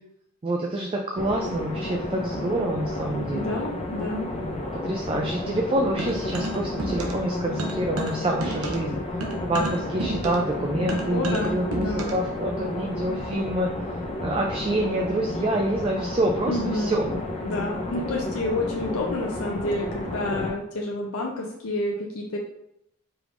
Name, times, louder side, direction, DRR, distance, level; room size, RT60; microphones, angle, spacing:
voice 1, 0.4-3.5 4.3-9.0 9.4-13.7 14.2-17.0, right 1 dB, 25° right, 1 dB, 0.3 m, -27 dB
sound 1, 1.2-20.5, left 1 dB, 30° left, 0.5 m, -32 dB
voice 2, 3.3-4.3 11.1-12.1 16.5-17.0 17.4-22.4, left 2 dB, 85° left, 0 dB, 0.5 m, -29 dB
sound 2, 6.0-7.3 7.6-12.3, right 2 dB, 90° right, 0.7 m, -32 dB
4.8 x 3.4 x 2.5 m, 0.80 s
head